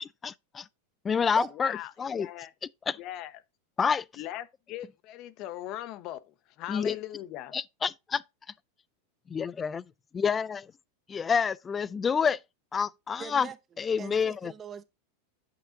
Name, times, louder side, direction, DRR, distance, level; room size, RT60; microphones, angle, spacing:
voice 1, 0.2-0.7 1.0-2.3 2.9-3.0 3.8-4.0 6.7-7.0 7.5-8.2 9.3-9.8 10.1-10.7 11.1-12.4 12.7-13.5 13.8-14.5, left 6 dB, 20° left, 0.4 m, -28 dB
voice 2, 1.5-2.5 3.0-3.3 4.2-7.5, left 13 dB, 45° left, 0.8 m, -40 dB
voice 3, 13.2-13.6 14.0-14.8, right 7 dB, 25° right, 0.9 m, -40 dB
8.5 x 5.7 x 3.8 m
hypercardioid pair, 120°, 0 cm